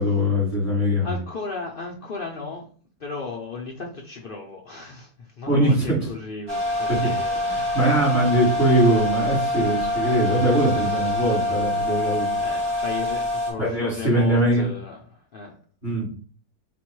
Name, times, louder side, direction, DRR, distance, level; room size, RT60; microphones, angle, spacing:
voice 1, 0.0-1.1 5.5-6.0 6.9-7.1 7.4-12.3 13.6-14.6 15.8-16.1, right 1 dB, 30° right, -5 dB, 1.8 m, -21 dB
voice 2, 1.0-2.7 3.0-7.9 12.0-15.5, left 4 dB, 75° left, 0 dB, 0.5 m, -35 dB
sound 1, 6.5-13.5, left 1 dB, 65° right, 2.2 m, -25 dB
4.0 x 2.2 x 4.5 m, 0.43 s
omnidirectional pair, 1.7 m